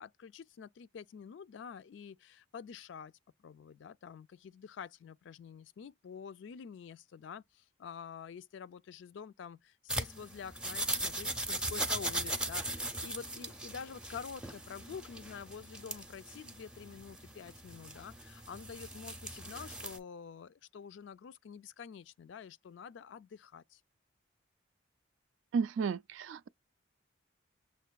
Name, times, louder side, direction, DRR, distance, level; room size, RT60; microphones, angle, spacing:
voice 1, 0.0-23.8, left 6 dB, 65° left, 0.3 m, -48 dB
sound 1, 9.9-20.0, right 1 dB, 5° right, 0.5 m, -39 dB
voice 2, 25.5-26.5, right 5 dB, 75° right, 0.3 m, -33 dB
6.6 x 2.6 x 2.2 m
head